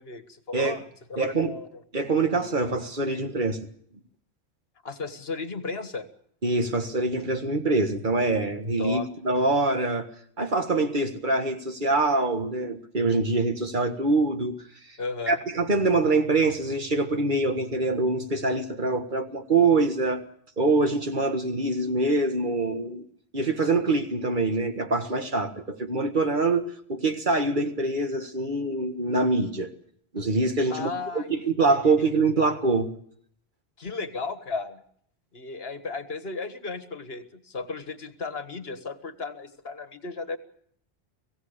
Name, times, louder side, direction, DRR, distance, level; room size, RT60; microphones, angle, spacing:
voice 1, 0.0-1.8 4.8-6.1 8.8-9.1 15.0-15.4 30.7-31.5 31.8-31.9 33.8-34.8 35.3-40.4, left 4 dB, 70° left, 10 dB, 1.8 m, -35 dB
voice 2, 1.2-1.5 1.9-3.6 6.4-10.1 10.4-14.6 15.3-20.2 20.6-23.0 23.3-29.7 30.1-32.9, right 3 dB, 50° right, 7 dB, 1.8 m, -24 dB
25.5 x 16.5 x 6.7 m, 0.64 s
omnidirectional pair, 1.1 m